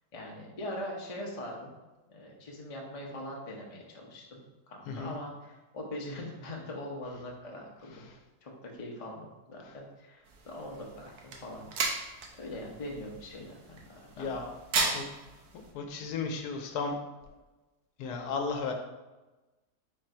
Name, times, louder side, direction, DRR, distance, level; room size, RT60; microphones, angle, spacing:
voice 1, 0.1-1.7 2.1-8.1 8.4-11.7 12.3-14.3 14.7-15.0, left 1 dB, 35° left, -1 dB, 0.6 m, -42 dB
sound 1, 10.3-15.7, right 4 dB, 75° right, 1.2 m, -36 dB
voice 2, 14.2-14.5 14.9-15.0 15.7-17.0 18.0-18.7, left 4 dB, 85° left, 4 dB, 1.2 m, -34 dB
4.4 x 2.5 x 4.3 m, 1.1 s
omnidirectional pair, 1.7 m